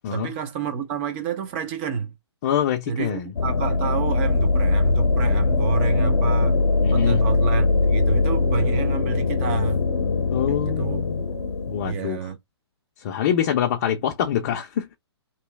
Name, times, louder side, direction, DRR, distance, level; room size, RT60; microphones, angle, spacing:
voice 1, 0.1-2.1 2.9-6.6 6.9-9.8 10.5-11.4 11.8-12.4, right 7 dB, 25° right, 0.6 m, -29 dB
voice 2, 2.4-3.3 6.8-7.2 10.3-11.2 11.7-12.2 13.0-15.0, left 10 dB, 35° left, 0.5 m, -25 dB
sound 1, 3.4-11.9, left 3 dB, 80° left, 0.7 m, -21 dB
3.0 x 2.7 x 3.4 m
hypercardioid pair, 150°, 15 cm